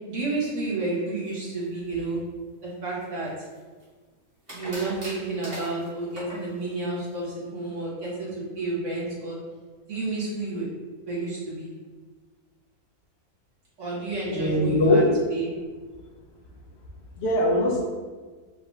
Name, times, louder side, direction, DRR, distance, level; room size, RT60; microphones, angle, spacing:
voice 1, 0.1-2.2 2.6-3.3 4.5-9.4 9.8-10.7 11.1-11.7 13.8-15.5, right 2 dB, 55° right, -7 dB, 1.6 m, -30 dB
sound 1, 3.0-3.8 4.5-6.5, equal, 25° right, 1.3 m, -40 dB
voice 2, 14.3-15.0 17.2-17.8, left 1 dB, 60° left, -3 dB, 0.8 m, -21 dB
4.7 x 2.5 x 3.1 m, 1.4 s
omnidirectional pair, 1.5 m